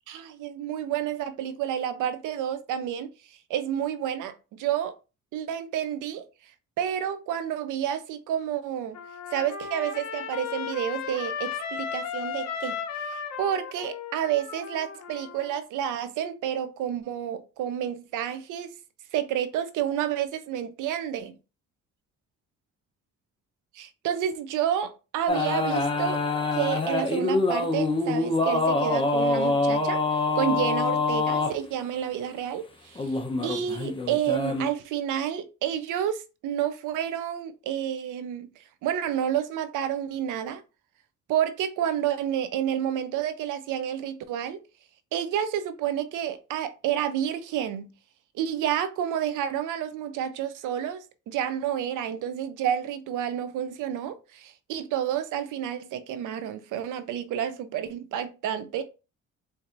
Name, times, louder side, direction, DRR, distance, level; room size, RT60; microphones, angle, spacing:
voice 1, 0.1-3.1 3.5-4.9 5.3-6.2 6.8-9.0 9.3-18.7 19.1-21.4 23.7-26.2 26.5-30.0 30.3-33.1 33.4-38.5 38.8-40.6 41.3-44.6 45.1-47.9 48.3-58.8, right 10 dB, 85° right, 0.6 m, -30 dB
Trumpet, 8.9-15.6, left 7 dB, 60° left, 0.8 m, -35 dB
sound 1, 25.3-31.5 33.0-34.7, left 3 dB, 15° left, 0.8 m, -25 dB
4.6 x 2.7 x 2.6 m
cardioid pair, 90°, 30 cm